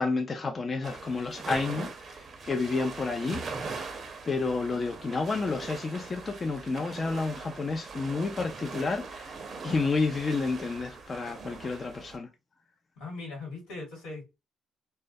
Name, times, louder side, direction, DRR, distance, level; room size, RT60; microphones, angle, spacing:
voice 1, 0.0-1.9 2.4-3.4 4.3-9.3 9.6-12.3, left 3 dB, 30° left, 0.3 m, -30 dB
sound 1, 0.8-12.2, right 4 dB, 40° right, 0.5 m, -41 dB
voice 2, 13.0-14.4, left 3 dB, 85° left, 1.5 m, -40 dB
2.2 x 2.2 x 2.5 m
cardioid pair, 110°, 0 cm